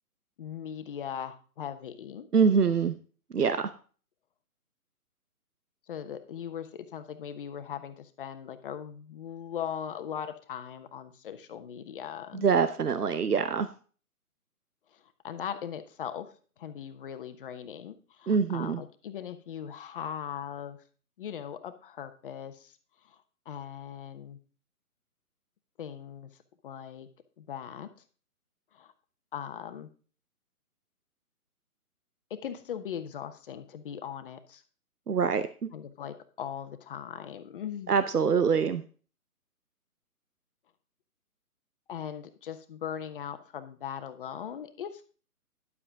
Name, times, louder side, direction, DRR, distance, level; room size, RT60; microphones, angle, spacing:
voice 1, 0.4-2.3 5.9-12.5 14.9-16.3 16.6-20.8 21.2-22.8 23.0-23.2 23.4-24.4 25.8-26.3 26.6-27.1 27.4-27.9 28.7-28.9 29.3-29.9 32.3-34.6 35.7-37.9 41.9-45.0, left 8 dB, 35° left, 10 dB, 1.1 m, -39 dB
voice 2, 2.3-3.0 3.3-3.7 12.3-13.7 18.3-18.8 35.1-35.7 37.9-38.8, right 6 dB, 90° right, 12 dB, 0.9 m, -25 dB
11.0 x 7.8 x 3.5 m, 0.38 s
figure-of-eight pair, 140°, 45 cm